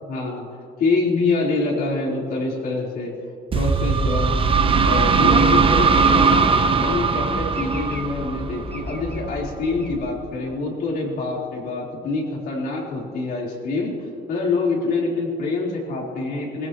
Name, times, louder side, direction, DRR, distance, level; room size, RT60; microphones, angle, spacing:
voice 1, 0.0-0.5 0.8-3.1 3.5-13.9 14.3-16.7, left 3 dB, 60° left, -3 dB, 4.0 m, -25 dB
sound 1, 3.5-9.2, right 4 dB, 30° right, 0.8 m, -19 dB
sound 2, 5.3-10.7, left 1 dB, 10° left, 1.8 m, -35 dB
20.0 x 16.5 x 3.1 m, 2.6 s
cardioid pair, 110°, 17 cm